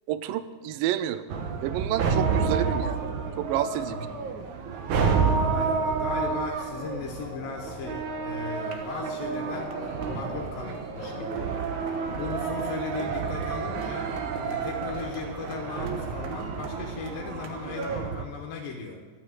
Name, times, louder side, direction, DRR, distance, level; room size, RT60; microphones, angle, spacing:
voice 1, 0.1-1.2 1.6-3.0 3.4-4.1, right 11 dB, 85° right, 13 dB, 2.4 m, -29 dB
sound 1, 1.3-18.2, right 5 dB, 70° right, 2.3 m, -30 dB
voice 2, 3.9-4.3 5.3-11.7 12.1-14.1 14.4-19.0, left 5 dB, 85° left, 0 dB, 2.9 m, -37 dB
sound 2, 5.6-11.3, left 5 dB, 50° left, 2.3 m, -45 dB
12.0 x 9.2 x 7.9 m, 1.4 s
omnidirectional pair, 3.9 m